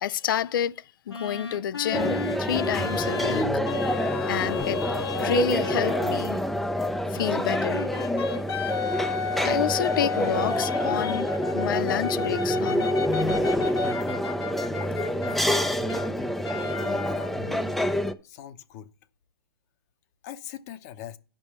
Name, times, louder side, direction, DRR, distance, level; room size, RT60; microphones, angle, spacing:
voice 1, 0.0-3.4 4.3-6.4 7.1-7.9 9.4-12.9, left 10 dB, 60° left, 0.5 m, -29 dB
sound 1, 1.1-6.2 7.1-16.1 16.4-17.5, left 5 dB, 85° left, 1.6 m, -33 dB
sound 2, 1.9-18.1, equal, ahead, 0.5 m, -27 dB
voice 2, 16.7-17.7 18.2-18.9 20.2-21.2, left 11 dB, 40° left, 1.0 m, -41 dB
10.0 x 5.4 x 7.1 m
hypercardioid pair, 135°, 13 cm